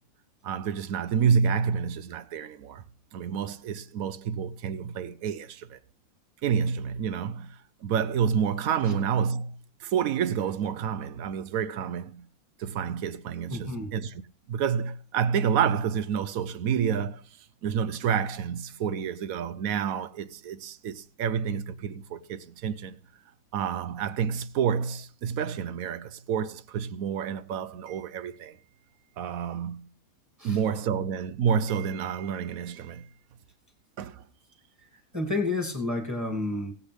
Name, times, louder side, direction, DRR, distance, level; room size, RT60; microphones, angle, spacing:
voice 1, 0.4-2.8 3.1-5.8 6.4-12.3 12.6-14.2 14.5-17.2 17.6-23.0 23.5-28.6 29.2-29.9 30.4-33.1 34.0-34.2, right 7 dB, 70° right, 1.1 m, -29 dB
voice 2, 13.5-13.9 30.4-30.6 35.1-36.7, left 2 dB, 10° right, 2.1 m, -30 dB
22.5 x 8.1 x 3.4 m
omnidirectional pair, 1.6 m